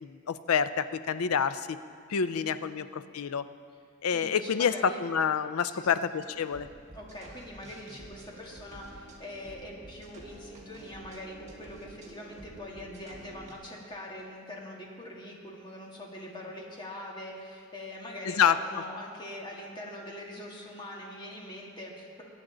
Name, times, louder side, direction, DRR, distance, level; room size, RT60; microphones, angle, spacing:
voice 1, 0.0-1.8 2.1-3.4 4.0-6.7 18.3-18.6, left 7 dB, 85° left, 13 dB, 0.5 m, -28 dB
voice 2, 2.3-2.9 3.7-3.8 4.1-5.0 5.7-6.0 6.9-22.2, left 1 dB, 20° left, -2 dB, 1.7 m, -43 dB
sound 1, 6.2-13.5, right 1 dB, 30° right, 1.6 m, -50 dB
20.5 x 9.2 x 3.8 m, 2.3 s
head